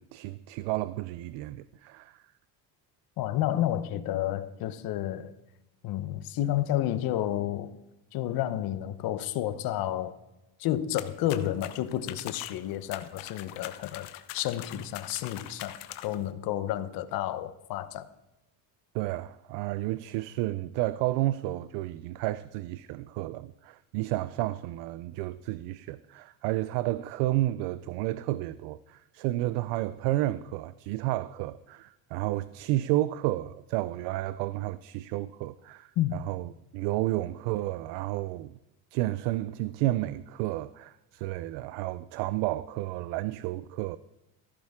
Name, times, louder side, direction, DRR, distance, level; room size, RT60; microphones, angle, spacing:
voice 1, 0.0-2.2 18.9-38.6 38.9-44.0, right 16 dB, 75° right, 0.6 m, -31 dB
voice 2, 3.2-5.3 5.8-7.7 8.1-10.1 10.6-15.8 16.0-18.1 36.0-36.2, left 12 dB, 55° left, 1.0 m, -30 dB
sound 1, 11.0-16.3, left 14 dB, 85° left, 1.1 m, -43 dB
15.5 x 13.5 x 3.7 m
cardioid pair, 140°, 43 cm